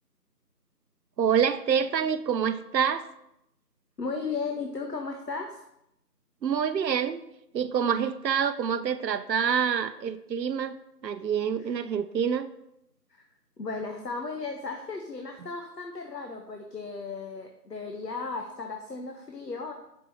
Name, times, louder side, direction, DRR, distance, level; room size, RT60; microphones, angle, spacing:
voice 1, 1.2-3.1 6.4-7.2 7.5-10.8 11.0-12.5, right 7 dB, 80° right, 11 dB, 0.6 m, -26 dB
voice 2, 4.0-5.6 11.7-11.8 13.6-19.7, left 4 dB, 70° left, 3 dB, 0.9 m, -35 dB
6.1 x 5.3 x 4.3 m, 0.82 s
figure-of-eight pair, 180°, 50 cm